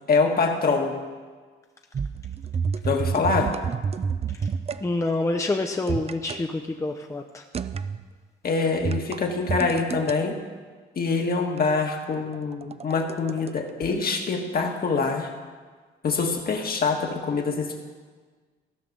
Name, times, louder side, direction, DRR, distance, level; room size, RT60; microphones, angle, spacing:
voice 1, 0.1-0.9 2.8-3.5 8.4-10.4 10.9-15.3 16.0-17.8, left 4 dB, 50° left, 2 dB, 1.7 m, -25 dB
sound 1, 1.9-4.8 5.9-6.4 7.5-8.0 8.8-10.1 11.6-13.5 13.8-13.9, right 6 dB, 30° right, 0.5 m, -29 dB
voice 2, 4.8-7.4, left 2 dB, 15° left, 4 dB, 0.7 m, -27 dB
15.0 x 5.9 x 6.8 m, 1.5 s
cardioid pair, 90°, 20 cm